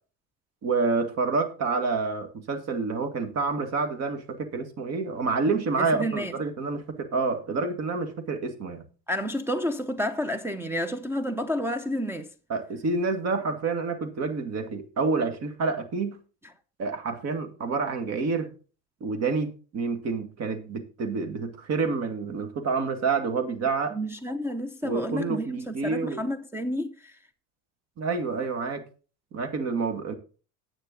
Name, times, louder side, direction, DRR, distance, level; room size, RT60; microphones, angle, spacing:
voice 1, 0.6-8.8 12.5-16.2 16.8-18.5 19.0-24.0 24.8-26.2 28.0-28.8 29.3-30.1, right 4 dB, 45° right, 2.0 m, -28 dB
voice 2, 5.8-6.4 9.1-12.3 23.9-27.2, equal, 5° right, 0.6 m, -30 dB
10.0 x 8.8 x 3.9 m
cardioid pair, 130°, 37 cm